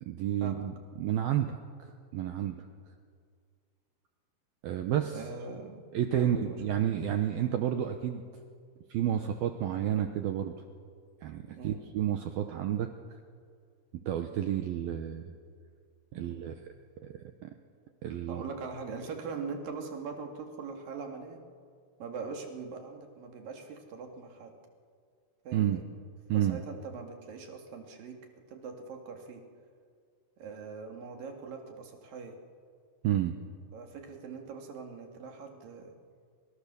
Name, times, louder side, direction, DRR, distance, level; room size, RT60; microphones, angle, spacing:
voice 1, 0.0-1.6 2.1-2.6 4.6-5.2 5.9-8.2 8.9-10.5 11.2-12.9 14.1-15.3 16.1-16.5 17.0-17.5 18.0-18.4 25.5-25.8 26.3-26.6 33.0-33.3, right 10 dB, 90° right, 6 dB, 2.1 m, -30 dB
voice 2, 5.1-6.6 11.5-11.8 16.1-16.5 18.3-21.4 22.0-24.5 25.5-25.8 26.3-28.2 28.5-29.5 30.4-32.4 33.7-35.9, right 5 dB, 50° right, 3 dB, 3.4 m, -42 dB
28.5 x 26.5 x 6.9 m, 2.1 s
omnidirectional pair, 5.8 m